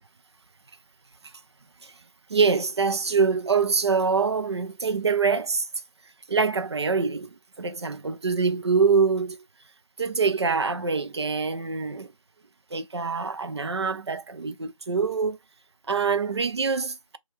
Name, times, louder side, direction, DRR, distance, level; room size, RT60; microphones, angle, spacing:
voice 1, 2.3-5.7 6.3-9.4 10.0-12.1 12.7-15.4 15.9-17.2, right 5 dB, 50° right, 0.5 m, -25 dB
5.0 x 2.3 x 3.0 m
figure-of-eight pair, 170°, 18 cm